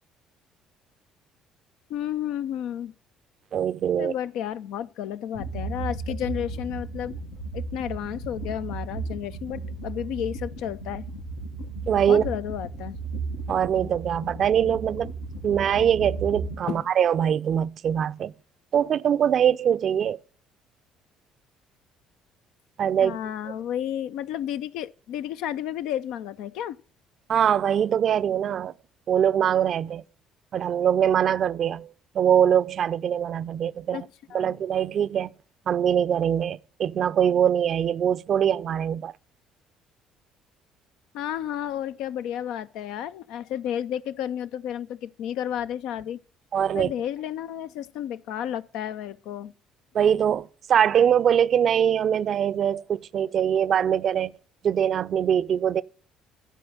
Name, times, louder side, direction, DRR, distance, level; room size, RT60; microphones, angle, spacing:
voice 1, 1.9-2.9 4.0-7.2 7.5-11.1 12.1-13.0 16.7-16.9 23.0-26.8 33.9-34.0 34.3-34.5 41.1-46.2 46.7-49.5, left 10 dB, 65° left, 0.4 m, -32 dB
voice 2, 3.5-4.1 11.9-12.2 13.5-15.1 15.4-18.3 18.7-20.2 22.8-23.2 27.3-28.7 29.1-30.0 30.5-34.1 34.3-35.3 35.7-39.1 46.5-46.9 49.9-54.3 54.6-55.8, right 9 dB, 50° right, 0.5 m, -23 dB
sound 1, 5.3-16.6, right 3 dB, 90° left, 2.0 m, -35 dB
13.0 x 4.7 x 8.6 m
hypercardioid pair, 55°, 0 cm